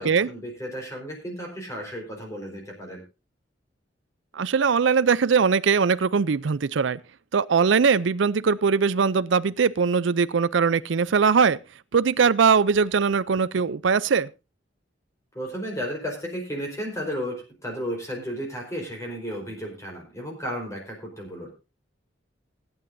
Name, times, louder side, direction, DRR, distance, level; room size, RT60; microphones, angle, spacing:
voice 1, 0.0-3.0 15.3-21.5, equal, 15° left, 4.4 m, -33 dB
voice 2, 4.3-7.0 7.3-11.6 11.9-14.3, right 5 dB, 70° right, 0.5 m, -21 dB
20.0 x 9.6 x 2.7 m
head